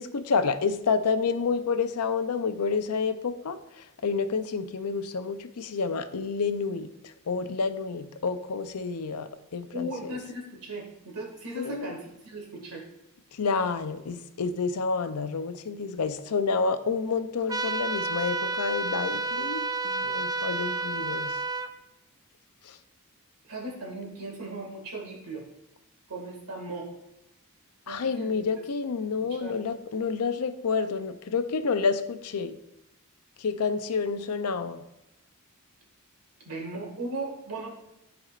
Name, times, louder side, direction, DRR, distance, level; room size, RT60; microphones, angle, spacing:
voice 1, 0.0-9.9 11.6-11.9 13.4-21.4 22.7-22.8 27.9-32.5 33.4-34.8, left 5 dB, 80° left, 10 dB, 0.5 m, -29 dB
voice 2, 9.7-12.8 23.4-25.5 26.1-26.9 27.9-28.3 29.3-29.6 36.4-37.7, right 2 dB, 90° right, -1 dB, 2.1 m, -37 dB
sound 1, 17.5-21.7, right 3 dB, 15° right, 0.3 m, -30 dB
12.0 x 4.3 x 2.5 m, 0.92 s
head